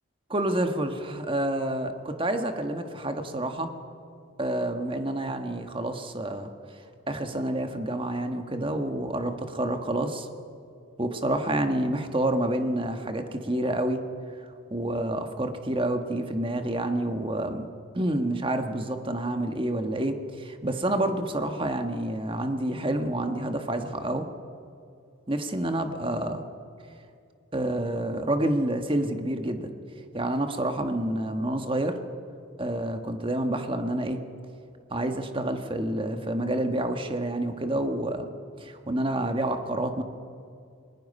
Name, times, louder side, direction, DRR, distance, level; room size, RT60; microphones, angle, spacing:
voice 1, 0.3-3.7 4.4-6.5 7.1-10.3 11.0-14.0 14.7-17.7 17.9-24.3 25.3-26.4 27.5-29.7 30.1-32.0 32.6-34.2 34.9-38.3 38.6-40.0, right 1 dB, 25° right, 6 dB, 1.4 m, -28 dB
29.0 x 20.5 x 5.5 m, 2.5 s
head